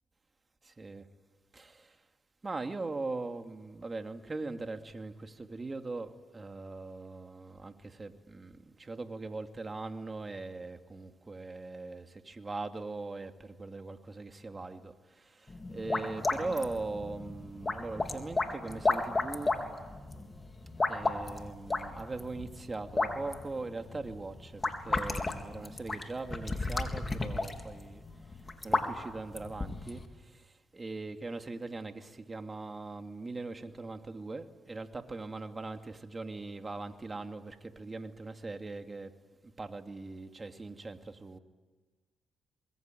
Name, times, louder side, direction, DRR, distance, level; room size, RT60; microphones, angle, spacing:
voice 1, 1.5-2.0 2.4-19.6 20.9-28.0 28.6-39.1 39.4-41.4, right 3 dB, 30° right, 2.5 m, -40 dB
sound 1, 15.5-30.0, left 3 dB, 30° left, 3.6 m, -34 dB
25.5 x 22.5 x 9.3 m
supercardioid pair, 60°, 0 cm